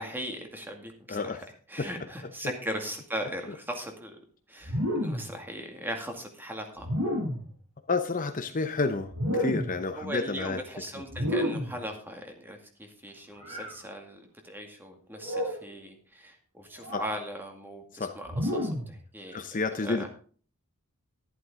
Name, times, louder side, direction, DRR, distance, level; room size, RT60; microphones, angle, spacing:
voice 1, 0.0-1.4 1.7-4.2 4.5-6.9 10.0-19.4 19.8-20.1, equal, 10° right, 3 dB, 2.1 m, -39 dB
voice 2, 1.1-1.4 1.8-1.9 3.5-3.6 7.9-10.6 10.9-11.0 16.9-17.0 17.9-18.1 19.3-20.1, left 3 dB, 40° left, 8 dB, 0.7 m, -30 dB
sound 1, 4.6-5.4 6.8-7.5 9.1-9.8 11.1-11.8 13.4-13.8 15.2-15.7 16.8-17.2 18.3-19.0, equal, 70° right, 6.6 m, -30 dB
12.0 x 11.0 x 3.7 m, 0.42 s
head